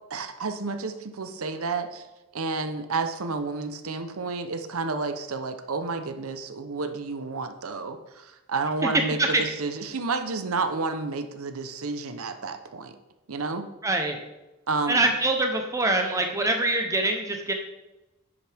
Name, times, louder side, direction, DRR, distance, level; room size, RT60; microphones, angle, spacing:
voice 1, 0.1-2.0 2.3-12.9 13.3-13.7 14.7-15.0, right 3 dB, 65° right, 8 dB, 0.8 m, -30 dB
voice 2, 13.8-14.2 14.9-17.5, right 2 dB, 15° right, 4 dB, 0.8 m, -24 dB
10.5 x 7.5 x 3.5 m, 1.0 s
head